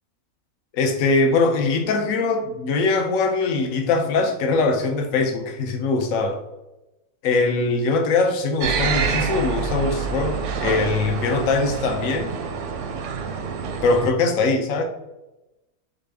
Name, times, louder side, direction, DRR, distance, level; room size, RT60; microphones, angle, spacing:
voice 1, 0.7-6.4 7.2-12.3 13.8-14.8, left 3 dB, 65° left, 5 dB, 1.0 m, -21 dB
sound 1, 8.6-14.1, right 5 dB, 65° right, 0.8 m, -27 dB
4.2 x 3.7 x 3.4 m, 0.97 s
omnidirectional pair, 1.6 m